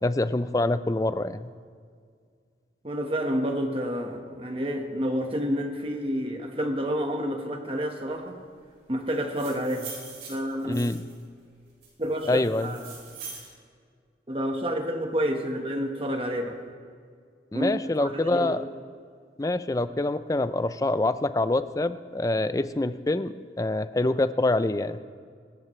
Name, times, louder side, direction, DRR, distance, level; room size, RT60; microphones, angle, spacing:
voice 1, 0.0-1.5 10.6-11.1 12.3-12.7 17.5-18.6 19.4-25.0, left 2 dB, 20° left, 12 dB, 0.4 m, -26 dB
voice 2, 2.8-8.4 8.9-9.9 10.3-10.9 12.0-13.0 14.3-16.6 17.5-18.6, equal, 30° right, 3 dB, 1.4 m, -29 dB
sound 1, 9.1-11.2 11.8-13.5, right 5 dB, 80° right, 4.5 m, -43 dB
25.0 x 13.5 x 3.3 m, 2.1 s
head